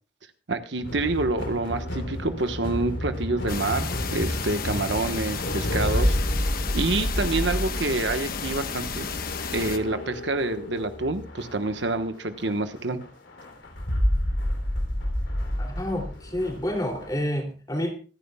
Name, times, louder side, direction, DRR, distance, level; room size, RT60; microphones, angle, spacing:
voice 1, 0.5-6.2 6.7-9.1 9.5-13.1, right 2 dB, 75° right, 8 dB, 1.3 m, -27 dB
sound 1, 0.8-17.2, equal, 90° left, 3.3 m, -30 dB
sound 2, 3.5-9.8, left 5 dB, 50° left, 1.1 m, -33 dB
voice 2, 15.6-18.0, left 1 dB, 20° left, 2 dB, 2.9 m, -29 dB
25.5 x 9.8 x 2.3 m, 0.36 s
head